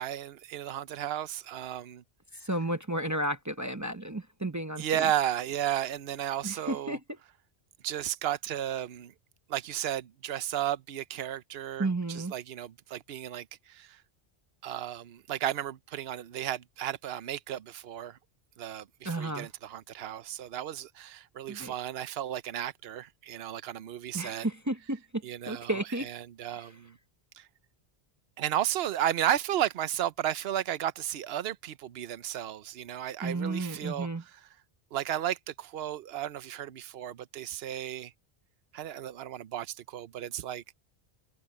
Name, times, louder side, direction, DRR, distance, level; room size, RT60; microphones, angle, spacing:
voice 1, 0.0-2.0 4.8-7.0 7.8-9.1 9.5-14.0 14.6-18.2 18.6-24.5 25.2-27.0 27.3-27.5 28.4-34.1 34.9-38.1 38.7-40.6, right 11 dB, 75° right, 0.9 m, -34 dB
voice 2, 2.4-5.1 6.4-7.0 11.8-12.3 19.0-19.5 21.5-21.7 24.1-26.1 26.5-26.7 33.2-34.2, right 2 dB, 20° right, 0.7 m, -33 dB
omnidirectional pair, 1.1 m